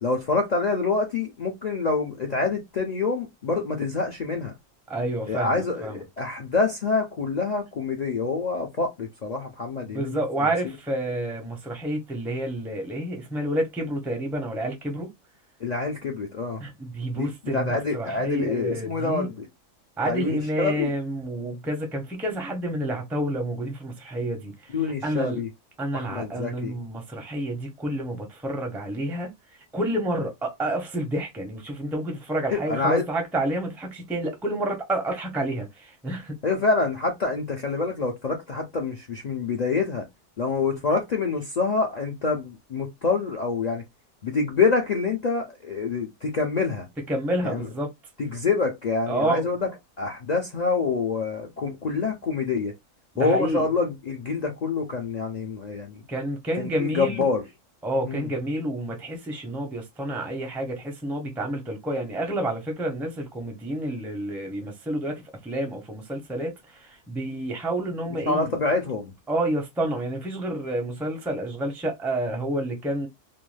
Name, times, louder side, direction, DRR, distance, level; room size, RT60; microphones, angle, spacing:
voice 1, 0.0-4.5 5.3-10.5 15.6-16.6 17.1-19.5 20.0-20.9 24.7-25.5 25.9-26.7 32.5-33.1 36.4-40.0 40.4-43.8 44.2-46.9 47.4-47.7 48.2-49.7 50.0-52.7 53.2-56.0 56.5-57.5 58.0-58.3 68.2-69.1, left 4 dB, 60° left, 0.4 m, -26 dB
voice 2, 4.9-6.0 9.8-15.1 16.6-19.3 20.0-24.7 25.0-25.4 25.8-29.3 29.7-36.4 47.1-47.9 49.1-49.5 53.1-53.6 56.1-57.3 57.8-68.6 69.3-73.1, right 1 dB, ahead, 0.4 m, -29 dB
2.5 x 2.2 x 3.1 m
omnidirectional pair, 1.4 m